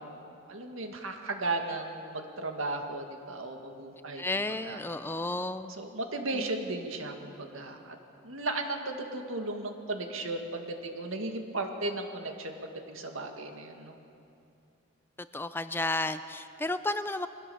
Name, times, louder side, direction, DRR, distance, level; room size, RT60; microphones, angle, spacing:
voice 1, 0.0-4.8 5.8-8.0 8.2-14.0, right 2 dB, 85° right, 4 dB, 2.0 m, -36 dB
voice 2, 4.2-5.7 6.3-6.5 15.3-17.3, left 2 dB, 10° left, 11 dB, 0.4 m, -32 dB
23.0 x 17.0 x 7.0 m, 2.6 s
head